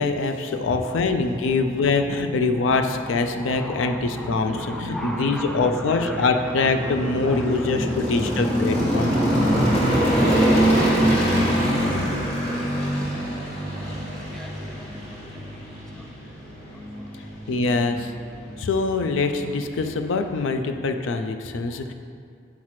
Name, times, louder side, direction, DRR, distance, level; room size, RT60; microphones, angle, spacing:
voice 1, 0.0-9.1 17.5-18.1 18.6-21.9, left 3 dB, 80° left, 7 dB, 0.4 m, -24 dB
sound 1, 1.1-20.5, right 1 dB, 35° left, 1.2 m, -26 dB
voice 2, 2.6-3.1 3.4-16.4 21.7-21.9, equal, ahead, 2 dB, 0.3 m, -31 dB
7.2 x 5.7 x 3.1 m, 2.3 s
head